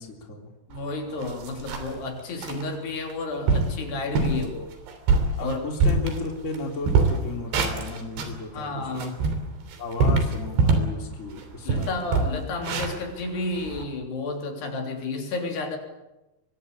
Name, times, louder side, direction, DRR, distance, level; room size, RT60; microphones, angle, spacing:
voice 1, 0.0-0.5 5.4-9.2 9.8-12.1, left 2 dB, 20° left, 2 dB, 3.2 m, -34 dB
voice 2, 0.7-4.7 5.4-5.6 8.5-9.1 11.7-15.8, left 3 dB, 70° left, 2 dB, 5.6 m, -31 dB
sound 1, 0.7-0.8 1.2-2.0 2.4-2.6 3.1-3.2 3.5-3.8 4.2-4.4 4.9-6.6 6.8-8.4 8.8-11.0 11.3-11.4 11.7-13.8, right 4 dB, 85° right, 5.3 m, -23 dB
24.0 x 22.5 x 8.6 m, 0.98 s
omnidirectional pair, 4.8 m